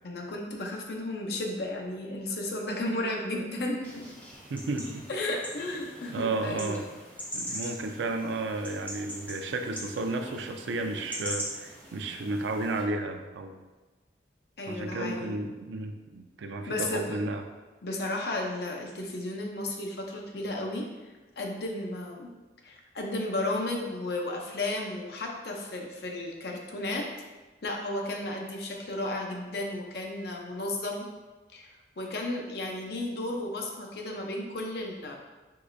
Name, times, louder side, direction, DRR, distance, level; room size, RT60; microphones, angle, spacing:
voice 1, 0.0-4.1 5.1-6.8 14.6-15.4 16.5-17.2 17.8-22.3 22.6-27.1 27.6-31.1 31.5-35.2, left 1 dB, 60° left, 0 dB, 0.6 m, -34 dB
sound 1, 3.8-12.8, equal, 10° left, 0.6 m, -41 dB
voice 2, 4.5-5.0 6.1-6.8 7.3-13.6 14.7-17.4, right 2 dB, 85° right, 6 dB, 0.4 m, -33 dB
4.6 x 3.1 x 2.6 m, 1.2 s
head